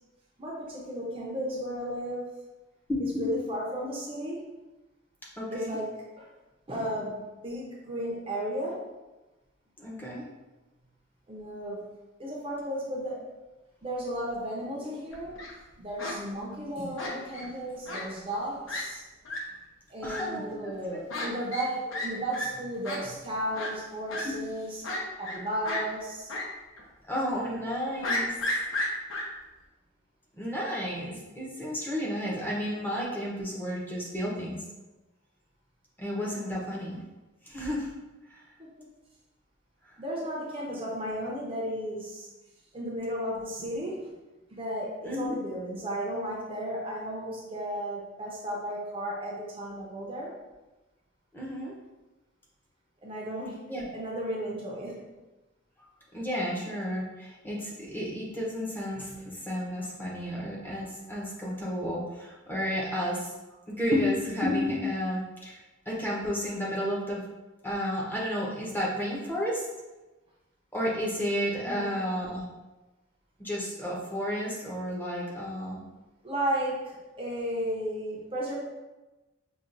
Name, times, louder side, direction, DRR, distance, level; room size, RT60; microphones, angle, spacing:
voice 1, 0.4-2.3 3.0-4.4 5.5-6.3 6.7-8.8 11.3-11.9 12.2-13.2 13.8-15.4 15.8-19.0 19.9-24.9 25.2-26.3 38.6-38.9 40.0-42.3 42.7-44.2 44.5-50.3 53.0-55.0 71.6-72.0 76.2-78.5, equal, 25° right, -4 dB, 0.6 m, -34 dB
voice 2, 2.9-3.3 5.4-5.8 9.8-10.2 20.0-21.2 24.2-24.4 27.1-28.4 30.4-34.6 36.0-37.0 37.5-37.9 38.3-38.4 45.0-45.4 51.3-51.8 53.7-53.8 56.1-63.3 63.7-65.6 65.9-67.2 67.6-69.7 70.7-72.4 73.4-75.8, equal, 10° left, -4 dB, 0.7 m, -32 dB
Fowl, 15.1-15.5 16.0-16.1 17.0-17.5 17.9-18.0 18.3-18.4 18.7-18.8 19.2-19.4 20.1-20.2 21.1-21.3 21.5-21.7 21.9-22.1 22.3-22.5 22.8-23.0 23.5-23.7 24.1-24.2 24.8-25.4 25.6-25.8 26.3-26.4 26.8-26.9 28.0-29.2, left 2 dB, 70° left, 0.8 m, -32 dB
5.7 x 2.3 x 2.5 m, 1.1 s
head